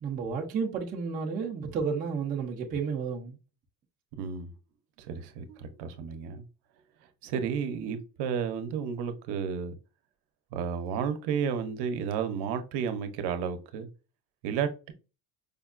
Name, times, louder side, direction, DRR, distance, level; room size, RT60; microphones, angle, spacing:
voice 1, 0.0-3.4, right 5 dB, 20° right, 0.3 m, -32 dB
voice 2, 4.2-4.5 5.0-6.4 7.2-9.8 10.5-13.9 14.4-14.9, right 7 dB, 60° right, 0.7 m, -32 dB
5.1 x 2.2 x 2.4 m
cardioid pair, 160°, 46 cm